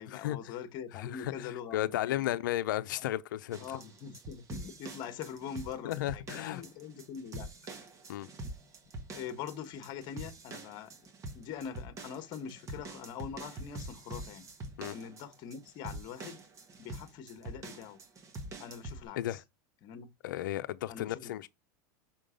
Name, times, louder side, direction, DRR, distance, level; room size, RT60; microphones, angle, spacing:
voice 1, 0.0-2.4 3.0-3.1 3.6-7.5 7.7-7.9 9.1-11.0 11.3-14.5 14.9-16.4 16.8-18.0 18.6-19.4 19.8-20.1 20.9-21.4, left 8 dB, 50° left, 1.4 m, -43 dB
voice 2, 0.9-3.7 5.8-6.6 8.1-8.3 14.8-14.9 19.2-19.4 20.2-21.5, left 14 dB, 80° left, 0.7 m, -34 dB
sound 1, 3.5-19.0, right 1 dB, 30° right, 1.5 m, -45 dB
6.0 x 3.8 x 5.1 m
supercardioid pair, 115°, 10 cm